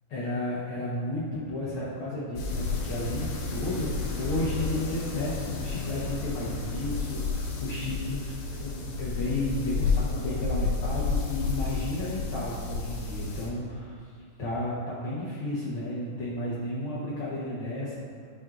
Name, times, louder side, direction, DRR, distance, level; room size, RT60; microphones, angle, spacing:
voice 1, 0.1-14.1 14.4-18.0, left 1 dB, 90° left, -8 dB, 1.1 m, -33 dB
sound 1, 2.4-13.5, left 4 dB, 65° left, 2.2 m, -31 dB
11.5 x 6.1 x 2.5 m, 2.1 s
omnidirectional pair, 4.0 m